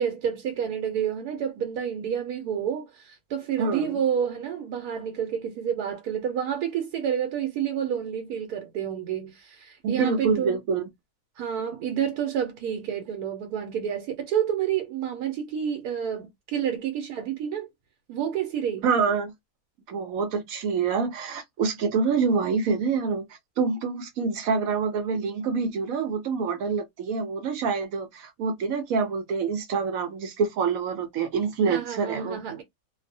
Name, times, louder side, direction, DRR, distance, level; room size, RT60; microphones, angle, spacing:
voice 1, 0.0-10.6 11.4-17.7 18.1-18.8 31.7-32.6, right 8 dB, 85° right, 1.1 m, -29 dB
voice 2, 3.6-4.0 9.8-10.9 18.8-19.3 19.9-23.2 23.6-32.6, right 5 dB, 70° right, 1.0 m, -26 dB
2.6 x 2.0 x 2.6 m
omnidirectional pair, 1.6 m